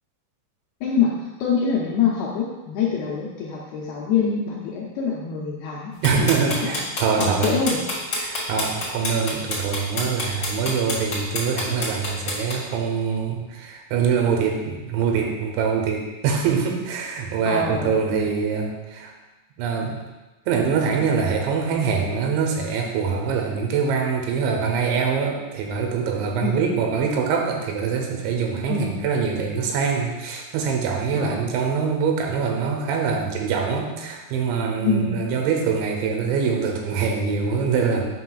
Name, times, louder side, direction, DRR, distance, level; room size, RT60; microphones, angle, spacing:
voice 1, 0.8-1.1 1.4-5.9 6.2-6.3 6.6-6.8 7.2-7.8 17.5-18.0 26.4-26.6 28.7-28.9 31.2-31.4 34.8-35.1, left 6 dB, 80° left, -4 dB, 2.3 m, -25 dB
sound 1, 6.0-12.5, left 2 dB, 55° left, 1.3 m, -27 dB
voice 2, 6.0-7.6 8.2-19.1 19.6-20.0 20.5-38.0, right 6 dB, 85° right, 2 dB, 3.2 m, -24 dB
9.0 x 5.6 x 2.3 m, 1.1 s
omnidirectional pair, 5.2 m